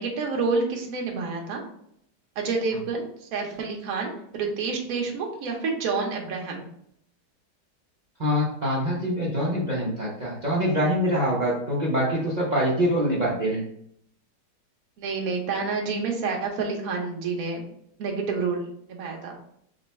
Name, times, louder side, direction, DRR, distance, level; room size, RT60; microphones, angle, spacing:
voice 1, 0.0-1.6 2.4-6.7 15.0-17.7 18.0-19.4, right 4 dB, 60° right, 0 dB, 1.1 m, -28 dB
voice 2, 8.2-13.6, equal, 80° right, -5 dB, 0.4 m, -24 dB
3.8 x 2.2 x 4.1 m, 0.70 s
omnidirectional pair, 2.0 m